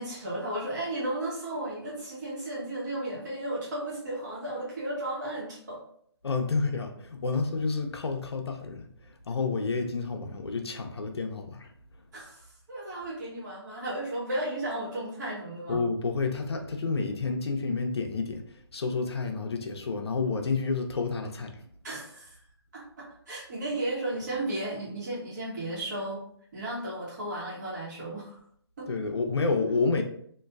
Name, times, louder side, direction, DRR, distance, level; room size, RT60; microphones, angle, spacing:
voice 1, 0.0-5.8 12.1-12.4 12.7-15.8 21.8-22.4 22.7-26.2 26.5-28.4 28.8-28.9, right 1 dB, 40° right, -6 dB, 1.3 m, -34 dB
voice 2, 6.2-8.9 9.3-11.7 15.7-18.4 18.7-21.5 28.9-30.0, left 4 dB, 65° left, 4 dB, 0.6 m, -29 dB
2.9 x 2.6 x 2.3 m, 0.63 s
hypercardioid pair, 160°, 14 cm